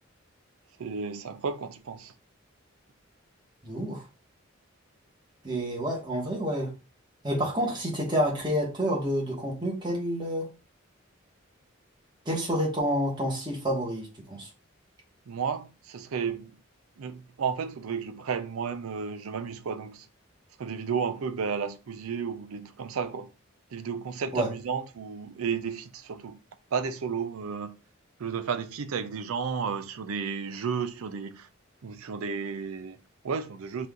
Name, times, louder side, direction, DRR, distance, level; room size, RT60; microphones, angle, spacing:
voice 1, 0.8-2.1 15.3-16.6 17.0-20.1 20.6-23.3 23.7-26.4 26.7-27.8 28.2-31.5 31.8-33.9, right 6 dB, 80° right, 0.4 m, -33 dB
voice 2, 3.6-4.0 5.4-6.7 7.2-10.5 12.3-14.5 24.3-24.5, equal, 20° right, 1.1 m, -29 dB
4.2 x 2.5 x 3.5 m
head